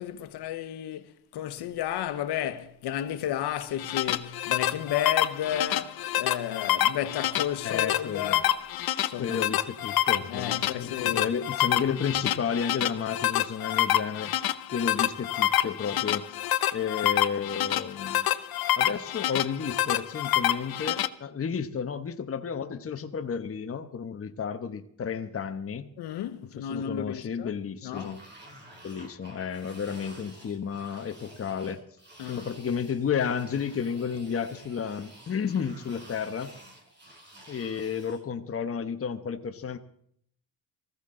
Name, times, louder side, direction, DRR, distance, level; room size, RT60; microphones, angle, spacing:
voice 1, 0.0-8.5 9.1-9.4 10.3-11.3 26.0-27.5 27.8-28.1 32.2-32.4, left 11 dB, 85° left, 1.2 m, -33 dB
sound 1, 3.6-21.1, left 12 dB, 65° left, 0.8 m, -27 dB
voice 2, 7.6-8.4 9.2-14.3 14.7-16.4 16.7-18.3 18.8-25.9 26.5-28.2 28.8-31.8 32.3-36.5 37.5-39.8, left 7 dB, 35° left, 1.1 m, -32 dB
sound 2, 27.9-38.2, right 1 dB, 25° right, 6.0 m, -50 dB
20.0 x 15.0 x 3.8 m
cardioid pair, 100°, 39 cm